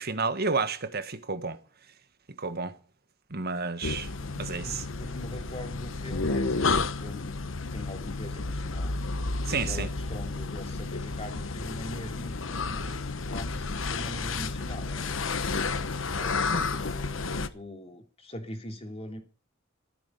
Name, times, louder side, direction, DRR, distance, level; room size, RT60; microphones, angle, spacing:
voice 1, 0.0-1.6 2.4-2.7 3.3-4.1 4.4-4.8 9.5-9.9, right 4 dB, 55° right, 1.6 m, -30 dB
sound 1, 3.8-17.5, left 3 dB, 75° left, 1.1 m, -31 dB
voice 2, 4.2-7.3 7.7-8.9 9.5-15.3 16.0-19.2, left 1 dB, 30° left, 3.0 m, -42 dB
15.0 x 13.0 x 5.5 m
head